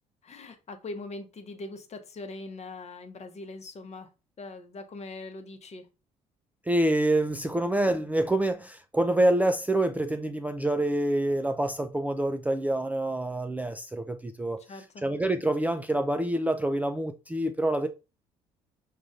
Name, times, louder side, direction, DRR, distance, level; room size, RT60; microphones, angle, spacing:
voice 1, 0.2-4.1 4.4-5.9 14.7-15.0, left 2 dB, 40° left, 0.9 m, -41 dB
voice 2, 6.7-17.9, right 1 dB, 10° right, 0.4 m, -27 dB
6.1 x 2.4 x 2.4 m
hypercardioid pair, 55°, 17 cm